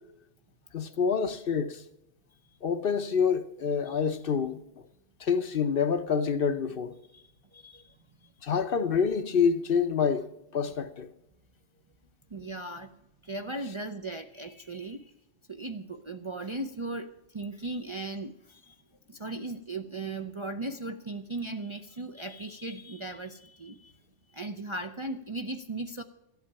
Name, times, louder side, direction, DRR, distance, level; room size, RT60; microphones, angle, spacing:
voice 1, 0.7-1.8 2.6-4.6 5.2-7.0 8.4-10.3 10.5-11.1, left 6 dB, 55° left, 0.9 m, -27 dB
voice 2, 7.1-7.9 8.2-8.3 12.3-12.9 13.2-15.1 15.5-18.8 19.1-23.9 24.3-26.0, right 2 dB, 35° right, 0.5 m, -37 dB
14.5 x 8.2 x 8.7 m
omnidirectional pair, 1.2 m